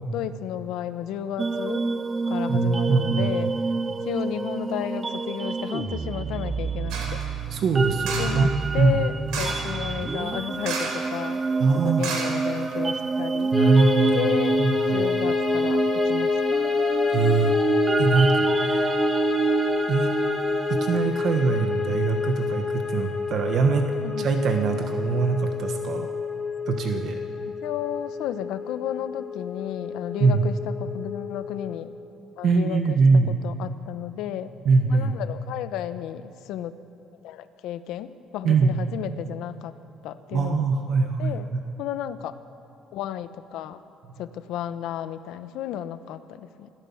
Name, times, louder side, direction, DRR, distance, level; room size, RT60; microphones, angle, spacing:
voice 1, 0.1-1.9 2.3-3.5 4.0-7.2 8.2-11.4 11.8-13.5 14.1-14.6 14.9-16.4 24.0-24.3 27.6-31.9 32.4-33.0 33.4-34.6 34.9-36.8 37.2-39.7 40.0-40.7 41.0-41.5 41.8-42.4 42.9-43.8 44.2-46.7, left 11 dB, 75° left, 12 dB, 0.9 m, -33 dB
sound 1, 1.4-21.0, right 4 dB, 20° right, 0.4 m, -27 dB
voice 2, 2.5-3.3 7.5-8.5 8.8-9.0 11.6-12.1 13.5-14.3 14.6-15.0 17.1-17.5 18.0-19.0 19.9-20.1 20.7-23.9 24.2-26.1 26.7-27.2 30.2-30.5 32.4-33.4 34.6-35.1 38.4-38.8 40.3-41.6, right 4 dB, 45° right, 5 dB, 1.2 m, -22 dB
sound 2, 6.9-7.3 8.0-8.4 9.3-9.7 10.6-11.1 11.4-11.5 12.0-12.9 13.3-13.4, right 4 dB, 85° right, 4.3 m, -32 dB
sound 3, 13.5-31.8, left 5 dB, 10° left, 2.9 m, -28 dB
28.0 x 14.0 x 7.2 m, 2.7 s
cardioid pair, 170°, 0 cm